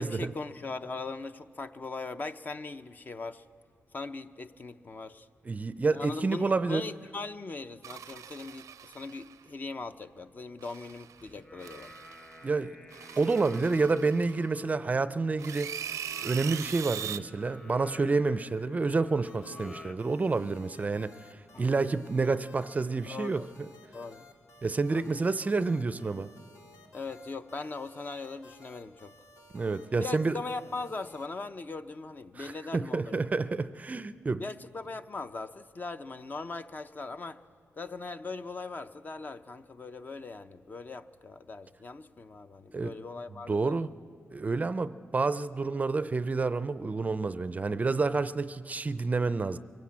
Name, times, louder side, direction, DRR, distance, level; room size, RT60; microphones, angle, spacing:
voice 1, 0.0-3.4 3.9-5.3 5.9-11.9 21.5-21.8 23.1-23.5 23.9-24.2 24.9-25.1 26.9-29.1 29.9-33.2 34.4-37.4 37.7-43.7, left 3 dB, 35° left, 0.6 m, -40 dB
voice 2, 5.5-6.8 12.4-12.8 13.2-15.7 16.2-21.1 21.6-23.7 24.6-26.3 29.5-30.4 32.4-34.4 42.7-42.9 43.5-43.9 44.3-49.6, right 3 dB, 30° right, 0.5 m, -29 dB
sound 1, 7.8-9.4 10.6-11.2 11.6-12.4 12.9-14.6 15.4-17.2, right 9 dB, 85° right, 0.6 m, -41 dB
Singing, 11.2-19.9, left 1 dB, 15° left, 0.9 m, -50 dB
sound 2, 19.2-31.3, left 2 dB, 80° left, 2.4 m, -56 dB
23.5 x 16.0 x 8.6 m
wide cardioid pair, 120°, 5 cm